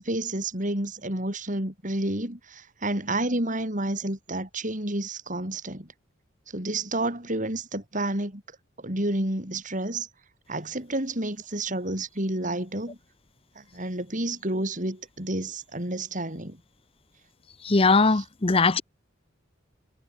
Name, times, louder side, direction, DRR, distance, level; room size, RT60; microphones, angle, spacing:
voice 1, 0.0-5.9 6.5-8.4 8.8-10.1 10.5-13.0 13.6-16.6 18.1-18.2, right 1 dB, 40° right, 6.2 m, -30 dB
voice 2, 17.6-18.8, left 3 dB, 30° left, 0.8 m, -20 dB
head